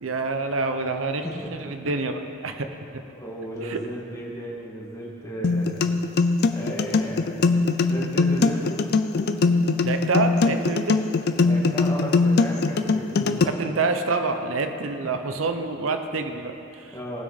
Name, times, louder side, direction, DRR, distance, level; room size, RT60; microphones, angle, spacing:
voice 1, 0.0-1.3 1.6-2.1 2.4-2.7 3.6-3.8 9.8-11.0 13.5-16.9, right 3 dB, 80° right, 7 dB, 0.8 m, -26 dB
voice 2, 1.2-1.7 3.1-6.0 6.5-8.8 9.1-9.4 11.4-13.5 16.9-17.2, equal, 15° left, -5 dB, 2.0 m, -34 dB
sound 1, 5.4-13.4, left 3 dB, 55° left, 0.5 m, -21 dB
18.5 x 6.3 x 4.1 m, 2.7 s
head